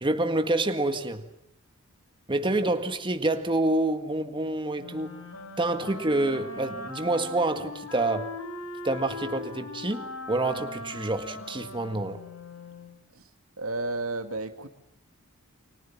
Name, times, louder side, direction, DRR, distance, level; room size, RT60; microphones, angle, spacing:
voice 1, 0.0-1.3 2.3-5.2 5.6-8.3 8.8-12.2, right 2 dB, 25° right, 1.8 m, -27 dB
Wind instrument woodwind instrument, 4.8-12.9, left 2 dB, 90° left, 7.2 m, -40 dB
voice 2, 13.6-14.7, right 2 dB, 80° right, 2.4 m, -32 dB
30.0 x 26.5 x 7.4 m
head